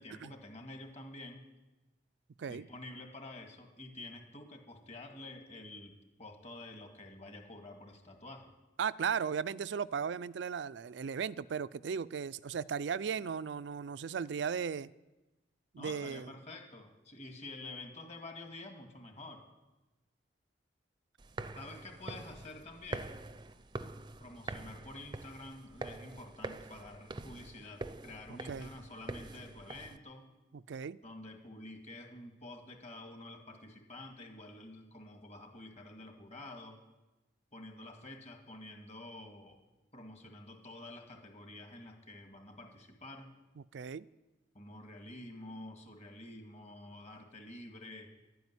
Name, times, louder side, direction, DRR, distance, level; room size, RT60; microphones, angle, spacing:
voice 1, 0.0-1.4 2.5-8.5 15.8-19.5 21.5-23.2 24.2-30.3 31.0-36.8 37.5-39.6 39.9-43.3 44.5-48.1, left 2 dB, 40° left, 3 dB, 2.1 m, -49 dB
voice 2, 8.8-14.9 15.7-16.3 28.4-28.7 30.7-31.0 43.7-44.1, right 6 dB, 75° right, 16 dB, 0.4 m, -36 dB
sound 1, 21.2-30.0, right 2 dB, 25° right, 0.5 m, -45 dB
12.0 x 9.3 x 9.6 m, 1.1 s
head